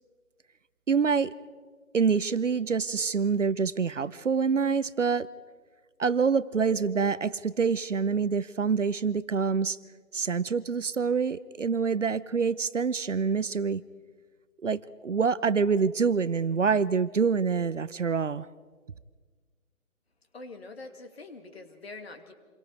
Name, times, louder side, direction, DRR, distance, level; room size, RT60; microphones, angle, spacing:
voice 1, 0.9-1.3 1.9-5.3 6.0-9.8 10.1-13.8 14.6-18.5, right 5 dB, 55° right, 16 dB, 0.8 m, -26 dB
voice 2, 20.3-22.3, left 3 dB, 45° left, 7 dB, 2.5 m, -44 dB
28.0 x 22.5 x 4.7 m, 1.5 s
figure-of-eight pair, 160°, 43 cm